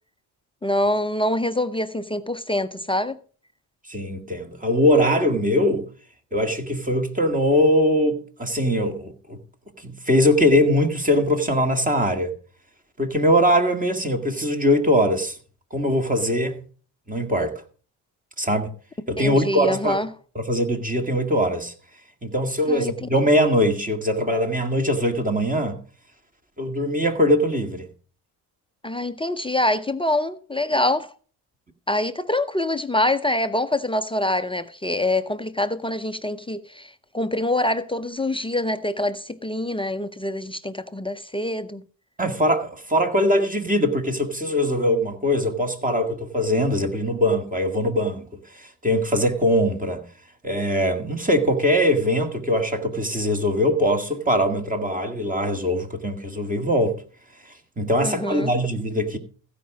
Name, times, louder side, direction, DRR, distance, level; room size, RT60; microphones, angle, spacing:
voice 1, 0.6-3.2 19.2-20.1 22.7-23.1 28.8-31.1 31.9-41.8 58.0-58.5, left 1 dB, 10° left, 0.6 m, -25 dB
voice 2, 3.9-5.9 6.3-9.4 9.8-12.3 13.0-15.4 15.7-16.6 17.1-17.5 18.4-18.7 19.1-20.0 20.4-21.7 22.2-25.8 26.6-27.9 42.2-48.3 48.5-50.0 50.4-57.0 57.8-59.2, equal, 15° right, 2.0 m, -21 dB
15.5 x 5.2 x 6.0 m
supercardioid pair, 80°, 45 cm